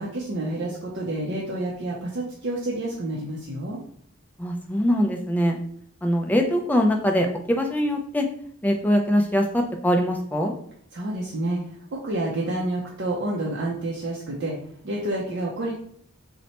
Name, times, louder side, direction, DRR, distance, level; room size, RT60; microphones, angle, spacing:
voice 1, 0.0-3.8 10.9-14.5 14.8-15.7, right 1 dB, 55° right, -4 dB, 0.5 m, -29 dB
voice 2, 4.4-5.6 6.0-8.3 8.6-10.5, equal, 10° left, 3 dB, 0.3 m, -22 dB
4.1 x 2.1 x 2.8 m, 0.63 s
head